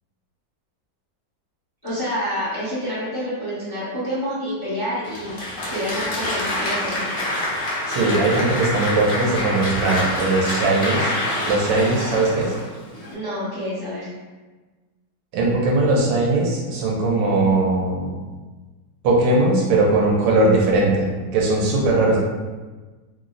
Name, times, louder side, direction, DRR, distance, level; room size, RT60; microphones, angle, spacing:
voice 1, 1.8-5.3 5.7-7.1 13.1-14.1, equal, 20° left, -11 dB, 0.7 m, -28 dB
Applause, 5.0-13.1, left 1 dB, 60° left, 0.5 m, -26 dB
voice 2, 7.9-11.1 11.4-12.5 15.3-18.1 19.0-22.2, right 2 dB, 90° right, -3 dB, 1.3 m, -19 dB
3.1 x 2.0 x 3.8 m, 1.3 s
omnidirectional pair, 1.9 m